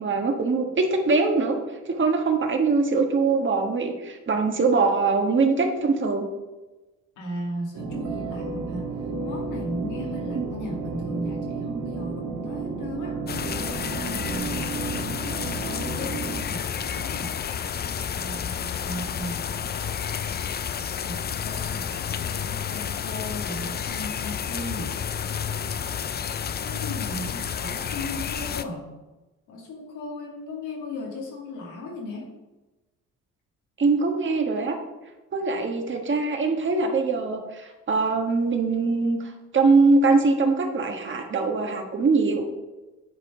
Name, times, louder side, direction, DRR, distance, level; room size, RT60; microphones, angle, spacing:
voice 1, 0.0-1.6 1.8-6.2 10.3-10.4 33.8-34.8 35.3-42.4, right 4 dB, 40° right, 3 dB, 1.4 m, -22 dB
voice 2, 7.2-13.2 13.8-14.7 15.1-17.4 18.1-19.6 21.0-25.0 26.6-28.9 29.5-32.3, left 1 dB, 85° left, -1 dB, 2.4 m, -36 dB
sound 1, 7.8-16.4, right 4 dB, 70° right, 1.6 m, -32 dB
sound 2, 13.3-28.6, left 8 dB, 35° left, 0.4 m, -30 dB
9.6 x 4.4 x 4.9 m, 1.1 s
cardioid pair, 90°, 30 cm